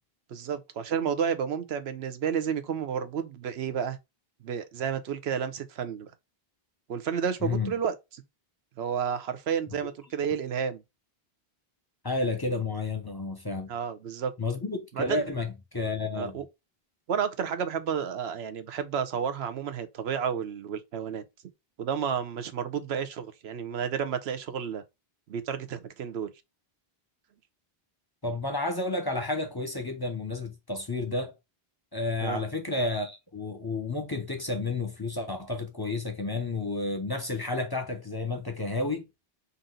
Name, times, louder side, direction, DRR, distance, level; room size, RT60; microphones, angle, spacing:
voice 1, 0.3-4.0 4.4-6.1 6.9-8.2 8.8-10.8 13.7-14.3 15.0-15.3 16.2-16.4 17.1-21.2 21.8-24.8 25.3-26.3 32.2-32.4, right 7 dB, 85° right, 1.0 m, -31 dB
voice 2, 7.4-7.7 12.0-13.7 14.4-16.4 28.2-31.3 31.9-39.0, left 2 dB, 25° left, 0.7 m, -31 dB
4.0 x 2.7 x 3.7 m
omnidirectional pair, 1.0 m